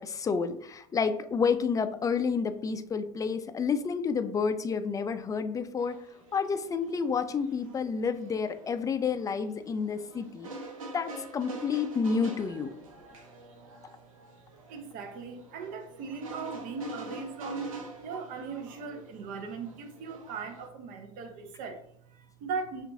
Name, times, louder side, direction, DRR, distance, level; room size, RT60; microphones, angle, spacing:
voice 1, 0.0-6.0 6.3-10.5 10.9-12.7, left 5 dB, 20° left, 0.4 m, -30 dB
sound 1, 5.8-20.7, right 2 dB, 85° right, 1.0 m, -46 dB
voice 2, 14.7-22.8, right 5 dB, 55° right, 0.8 m, -39 dB
5.4 x 2.6 x 2.6 m
hypercardioid pair, 80°, 17 cm